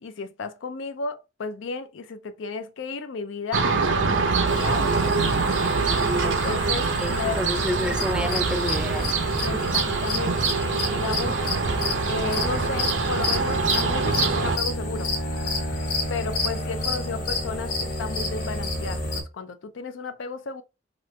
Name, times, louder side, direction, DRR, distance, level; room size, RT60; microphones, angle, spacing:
voice 1, 0.0-4.9 6.2-7.4 9.4-10.6 10.9-11.4 12.0-15.1 16.1-20.6, left 4 dB, 75° left, 0.4 m, -33 dB
sound 1, 3.5-14.6, right 4 dB, 75° right, 0.6 m, -24 dB
sound 2, 4.5-19.2, left 2 dB, 45° left, 1.2 m, -30 dB
voice 2, 7.0-9.2, equal, 5° right, 0.3 m, -29 dB
3.0 x 2.4 x 3.1 m
head